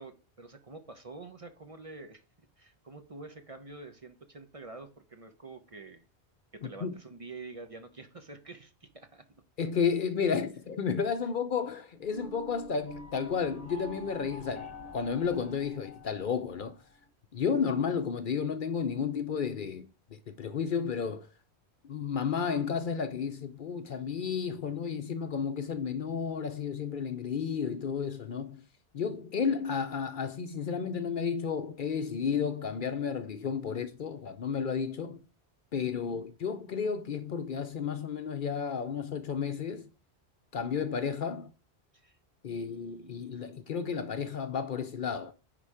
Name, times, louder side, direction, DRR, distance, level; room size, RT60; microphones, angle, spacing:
voice 1, 0.0-2.2 2.6-6.1 6.5-9.2 35.9-36.3 41.9-42.2 42.4-43.6, right 3 dB, 35° right, 0.8 m, -48 dB
voice 2, 6.6-6.9 9.6-16.8 17.3-21.3 21.8-28.6 28.9-35.2 35.7-39.9 40.5-41.5 42.4-45.3, left 6 dB, 55° left, 0.7 m, -32 dB
sound 1, 12.0-17.1, equal, 35° left, 1.1 m, -47 dB
9.9 x 3.8 x 4.8 m
omnidirectional pair, 1.1 m